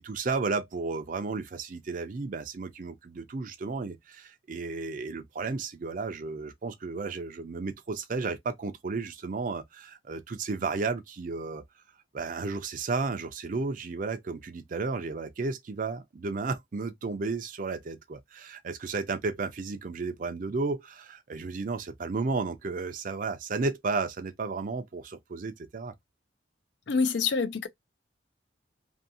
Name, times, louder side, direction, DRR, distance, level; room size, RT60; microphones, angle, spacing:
voice 1, 0.0-11.6 12.1-25.9, right 4 dB, 45° right, 0.4 m, -33 dB
voice 2, 26.9-27.7, left 5 dB, 65° left, 0.5 m, -26 dB
2.7 x 2.6 x 2.6 m
head